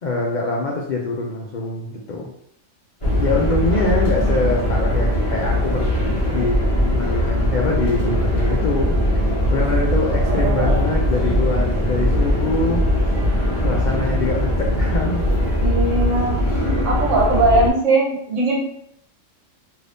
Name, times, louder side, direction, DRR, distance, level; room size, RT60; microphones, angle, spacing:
voice 1, 0.0-2.3 3.0-5.9 6.3-6.6 6.9-9.3 9.5-12.8 13.6-15.2, left 3 dB, 75° left, -2 dB, 0.4 m, -24 dB
sound 1, 3.0-17.7, equal, 30° left, 0.8 m, -20 dB
voice 2, 3.9-4.3 10.2-10.9 15.6-16.4 16.8-18.6, right 2 dB, 70° right, -2 dB, 1.1 m, -20 dB
2.7 x 2.6 x 3.3 m, 0.72 s
omnidirectional pair, 1.4 m